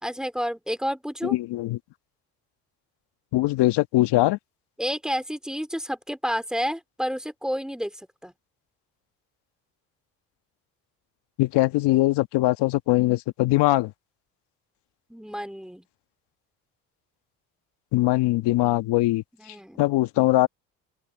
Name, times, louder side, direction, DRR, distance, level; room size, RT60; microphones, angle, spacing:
voice 1, 0.0-1.4 4.8-8.3 15.1-15.9 19.4-19.8, equal, ahead, 3.4 m, -30 dB
voice 2, 1.2-1.8 3.3-4.4 11.4-13.9 17.9-20.5, left 17 dB, 70° left, 1.4 m, -22 dB
open air
supercardioid pair, 70°, 43 cm